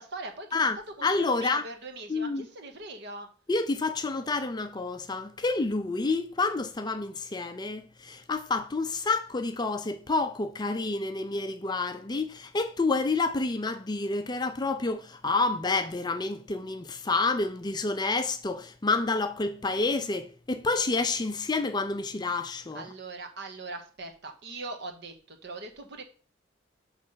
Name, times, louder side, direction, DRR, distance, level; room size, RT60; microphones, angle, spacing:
voice 1, 0.0-0.5 1.0-3.3 22.7-26.0, right 2 dB, 60° right, 1.1 m, -41 dB
voice 2, 0.5-1.6 2.1-2.5 3.5-22.9, left 3 dB, 20° left, 0.5 m, -29 dB
6.5 x 3.2 x 5.6 m
head